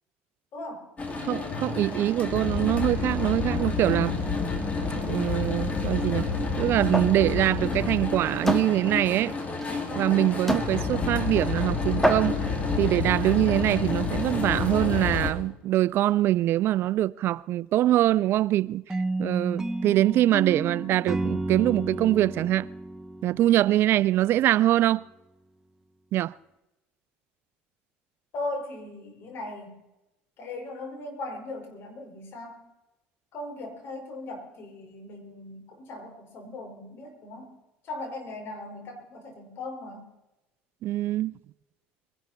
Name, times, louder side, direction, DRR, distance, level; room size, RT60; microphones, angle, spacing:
voice 1, 0.5-0.9 28.3-29.8 30.4-32.7 33.3-37.6 37.8-40.1, left 2 dB, 55° left, 5.4 m, -38 dB
sound 1, 1.0-15.3, left 4 dB, 30° left, 2.8 m, -29 dB
voice 2, 1.3-4.2 5.0-6.3 6.6-9.3 9.9-12.4 12.8-22.7 23.2-25.0 26.1-26.3 40.8-41.3, right 14 dB, 55° right, 0.4 m, -24 dB
sound 2, 6.9-7.2 7.6-7.8 8.5-8.7 9.6-9.7 10.5-10.7 11.5-11.6 12.0-12.5, equal, 5° left, 1.7 m, -25 dB
sound 3, 18.9-24.0, right 2 dB, 10° right, 0.7 m, -32 dB
22.5 x 11.5 x 4.4 m
supercardioid pair, 90°, 5 cm